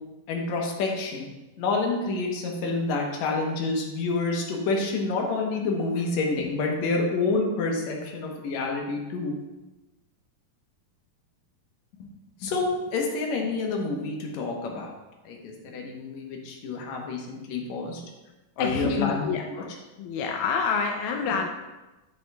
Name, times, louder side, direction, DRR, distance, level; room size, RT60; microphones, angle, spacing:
voice 1, 0.3-1.3 1.6-9.3 12.0-12.1 12.4-14.9 15.2-18.0 18.6-19.3, left 3 dB, 65° left, 0 dB, 2.1 m, -28 dB
voice 2, 18.6-19.7 20.0-21.5, left 6 dB, 85° left, 2 dB, 1.8 m, -27 dB
10.0 x 7.2 x 2.4 m, 1.1 s
omnidirectional pair, 4.0 m